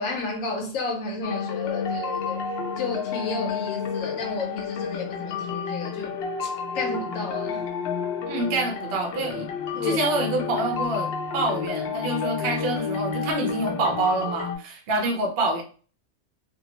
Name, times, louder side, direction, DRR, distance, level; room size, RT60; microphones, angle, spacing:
voice 1, 0.0-2.4 2.8-6.2 6.4-7.6 9.8-10.0, left 3 dB, 85° left, 1.0 m, -32 dB
sound 1, 1.2-14.6, left 5 dB, 60° left, 0.7 m, -30 dB
voice 2, 8.2-9.5 9.8-15.6, right 2 dB, 60° right, 0.7 m, -26 dB
2.6 x 2.2 x 2.8 m
omnidirectional pair, 1.3 m